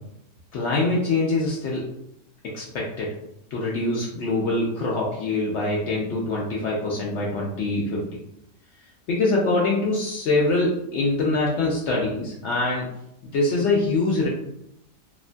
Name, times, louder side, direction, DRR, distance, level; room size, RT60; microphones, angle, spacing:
voice 1, 0.5-1.9 2.5-3.1 3.5-8.0 9.1-12.9 13.3-14.3, left 2 dB, 85° left, -4 dB, 0.6 m, -24 dB
2.9 x 2.2 x 2.5 m, 0.79 s
omnidirectional pair, 1.8 m